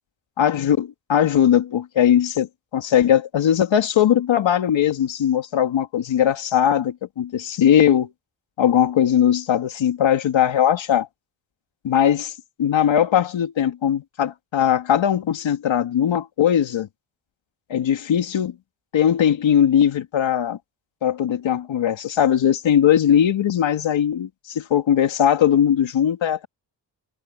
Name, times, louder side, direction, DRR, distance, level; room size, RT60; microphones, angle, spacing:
voice 1, 0.4-8.1 8.6-11.1 11.8-12.3 12.6-16.9 17.7-18.5 18.9-20.6 21.0-26.5, left 9 dB, 75° left, 2.6 m, -19 dB
cardioid pair, 70°, 46 cm